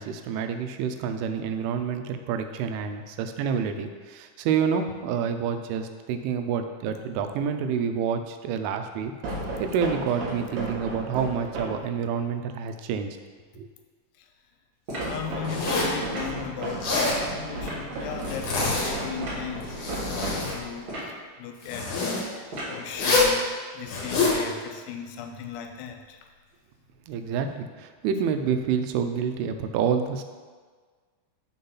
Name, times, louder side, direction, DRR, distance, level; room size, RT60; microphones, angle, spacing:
voice 1, 0.0-9.1 9.6-13.2 13.6-13.7 27.1-30.2, right 7 dB, 90° right, 7 dB, 3.0 m, -28 dB
sound 1, 9.2-11.9 15.0-20.9, right 1 dB, 65° right, 2.5 m, -34 dB
sound 2, 14.9-15.2 16.1-16.4 17.6-17.9 19.2-19.4 20.8-21.2 22.5-22.9, equal, 45° right, 1.6 m, -35 dB
voice 2, 15.0-23.4 23.7-26.2, left 7 dB, 85° left, 5 dB, 2.9 m, -37 dB
Zipper (clothing), 15.4-16.0 16.7-17.2 18.2-19.0 19.6-20.6 21.6-22.2 22.9-23.3 23.9-24.4, left 3 dB, 60° left, 2.4 m, -26 dB
6.7 x 3.9 x 5.6 m, 1.5 s
omnidirectional pair, 5.4 m